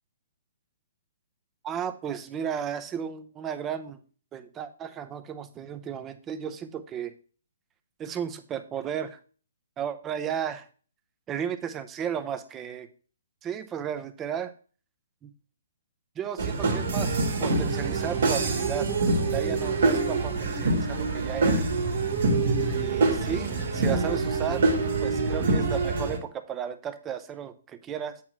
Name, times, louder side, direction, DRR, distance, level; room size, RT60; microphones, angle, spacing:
voice 1, 1.6-4.0 4.3-7.1 8.0-9.2 9.8-10.7 11.3-12.9 13.4-14.5 15.2-15.3 16.2-18.9 19.3-21.7 22.7-24.7 25.0-28.2, right 8 dB, 20° right, 10 dB, 0.7 m, -34 dB
sound 1, 16.4-26.2, right 3 dB, 60° right, 1.7 m, -25 dB
8.5 x 3.0 x 6.0 m, 0.39 s
hypercardioid pair, 135°, 0 cm